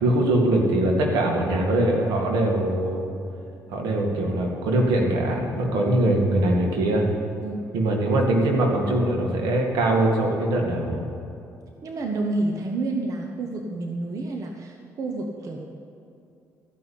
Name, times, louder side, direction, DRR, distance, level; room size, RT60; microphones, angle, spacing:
voice 1, 0.0-3.1 3.7-7.1 7.7-11.0, right 1 dB, 90° right, 1 dB, 2.0 m, -22 dB
voice 2, 7.4-7.7 11.8-15.7, right 2 dB, 55° right, 2 dB, 1.1 m, -29 dB
13.5 x 5.8 x 8.5 m, 2.6 s
cardioid pair, 85°, 7 cm